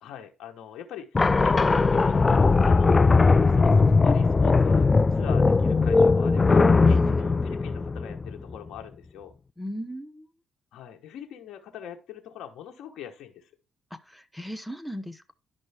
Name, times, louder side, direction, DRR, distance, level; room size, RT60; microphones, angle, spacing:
voice 1, 0.0-3.7 4.0-9.3 10.7-13.5, left 9 dB, 80° left, 1.0 m, -42 dB
sound 1, 1.1-8.6, left 4 dB, 25° left, 0.3 m, -19 dB
voice 2, 6.9-7.3 9.6-10.3 13.9-15.3, equal, 5° left, 0.8 m, -37 dB
10.5 x 5.3 x 3.4 m
cardioid pair, 90°, 0 cm